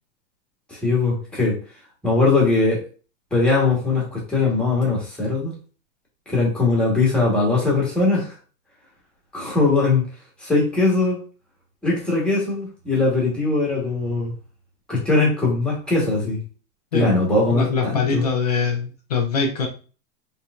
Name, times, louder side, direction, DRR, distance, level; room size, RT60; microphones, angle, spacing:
voice 1, 0.7-1.6 2.0-2.8 3.3-5.5 6.3-8.3 9.3-10.0 10.4-11.2 11.8-14.3 14.9-16.4 16.9-18.2, left 3 dB, ahead, -4 dB, 1.2 m, -20 dB
voice 2, 17.5-19.7, left 5 dB, 30° left, 2 dB, 0.3 m, -23 dB
5.5 x 3.2 x 2.4 m, 0.37 s
supercardioid pair, 165°, 48 cm